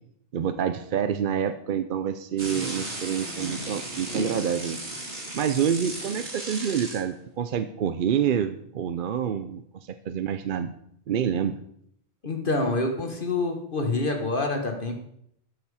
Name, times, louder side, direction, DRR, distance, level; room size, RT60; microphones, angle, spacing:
voice 1, 0.3-4.8 5.3-10.7 11.1-11.6, right 8 dB, 60° right, 11 dB, 0.7 m, -27 dB
sound 1, 2.4-7.0, right 1 dB, 85° right, 2.8 m, -35 dB
voice 2, 12.2-14.9, left 2 dB, 50° left, 4 dB, 1.5 m, -27 dB
12.5 x 7.2 x 4.8 m, 0.71 s
omnidirectional pair, 1.1 m